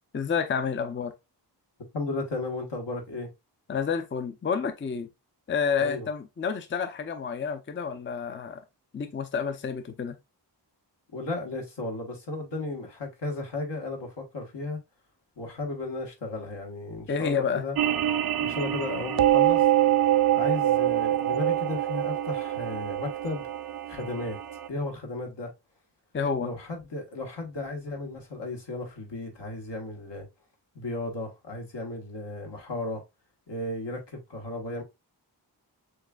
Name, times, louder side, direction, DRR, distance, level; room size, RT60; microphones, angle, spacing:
voice 1, 0.1-1.1 3.7-5.1 5.5-8.6 8.9-10.2 17.1-17.6 26.1-26.5, left 6 dB, 30° left, 0.5 m, -29 dB
voice 2, 1.9-3.3 5.8-6.1 11.1-14.8 15.4-17.8 18.4-19.6 20.3-23.5 23.9-24.4 24.7-25.5 26.4-30.3 30.7-33.0 33.5-34.8, left 2 dB, 75° left, 1.4 m, -34 dB
sound 1, 17.8-24.7, right 12 dB, 55° right, 0.5 m, -25 dB
6.4 x 2.5 x 2.3 m
wide cardioid pair, 85°, 43 cm